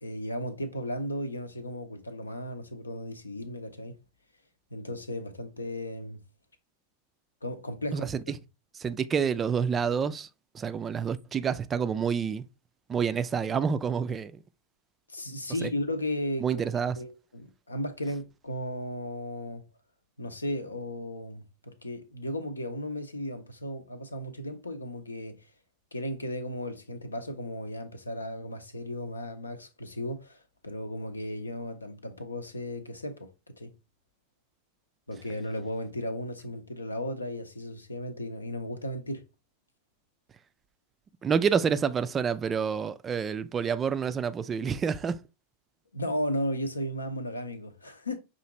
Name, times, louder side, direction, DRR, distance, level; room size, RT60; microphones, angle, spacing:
voice 1, 0.0-4.0 4.7-6.2 7.4-8.1 15.1-16.6 17.0-19.6 20.2-25.4 25.9-33.3 33.6-33.7 35.1-39.2 45.9-48.2, left 1 dB, 80° left, 0.6 m, -35 dB
voice 2, 7.9-8.2 8.8-10.3 10.5-12.4 12.9-14.4 15.6-15.7 16.4-17.0 41.2-45.2, right 6 dB, 20° right, 0.3 m, -28 dB
5.6 x 2.5 x 3.0 m
figure-of-eight pair, 90°, 0 cm